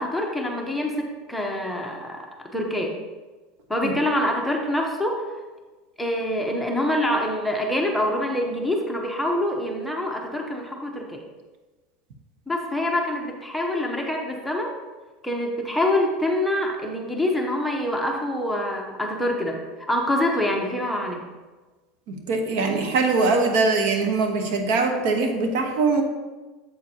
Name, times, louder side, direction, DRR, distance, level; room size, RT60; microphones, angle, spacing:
voice 1, 0.0-2.2 2.5-2.9 3.7-5.3 6.0-11.2 12.5-14.8 15.2-19.6 19.9-21.2, left 1 dB, ahead, 0 dB, 0.9 m, -25 dB
voice 2, 22.1-26.0, right 3 dB, 70° right, 4 dB, 1.1 m, -22 dB
7.7 x 7.4 x 2.9 m, 1.2 s
supercardioid pair, 145°, 0 cm